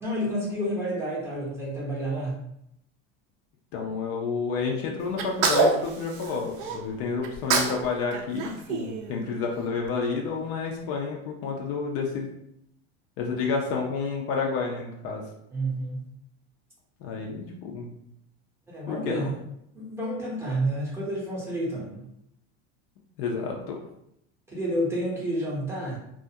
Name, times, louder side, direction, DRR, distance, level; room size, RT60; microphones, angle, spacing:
voice 1, 0.0-2.4 15.5-16.0 18.7-19.4 19.7-22.1 24.5-26.0, right 1 dB, 10° right, -6 dB, 0.6 m, -29 dB
voice 2, 3.7-12.3 13.2-15.2 17.0-17.9 18.9-19.2 23.2-23.8, left 5 dB, 50° left, 0 dB, 0.4 m, -30 dB
Sneeze, 5.2-6.8 7.2-7.8 8.1-9.6, right 4 dB, 50° right, 0.4 m, -26 dB
2.3 x 2.0 x 2.6 m, 0.76 s
cardioid pair, 150°, 30 cm